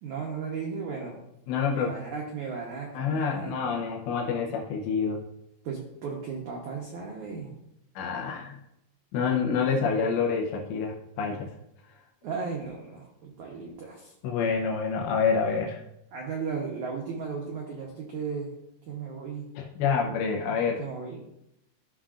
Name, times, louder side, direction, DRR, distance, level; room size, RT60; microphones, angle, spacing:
voice 1, 0.0-1.2 1.7-3.5 5.6-7.5 12.2-14.1 16.1-18.5 18.9-19.5 20.4-21.2, right 5 dB, 90° right, 0 dB, 1.7 m, -35 dB
voice 2, 1.5-1.9 2.9-5.2 8.0-8.6 9.1-11.5 14.2-15.8 19.6-20.8, left 5 dB, 85° left, 0 dB, 3.1 m, -27 dB
14.0 x 5.6 x 2.5 m, 0.82 s
omnidirectional pair, 4.9 m